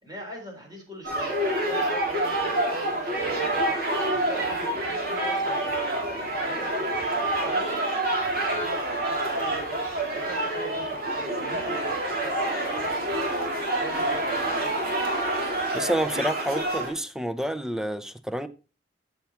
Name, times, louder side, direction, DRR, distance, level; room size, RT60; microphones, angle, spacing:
voice 1, 0.0-9.9 10.1-14.7, right 1 dB, 25° right, 4.0 m, -42 dB
sound 1, 1.0-16.9, right 1 dB, 60° right, 3.7 m, -27 dB
voice 2, 15.7-18.5, right 1 dB, 5° right, 0.6 m, -28 dB
14.0 x 7.1 x 3.0 m
head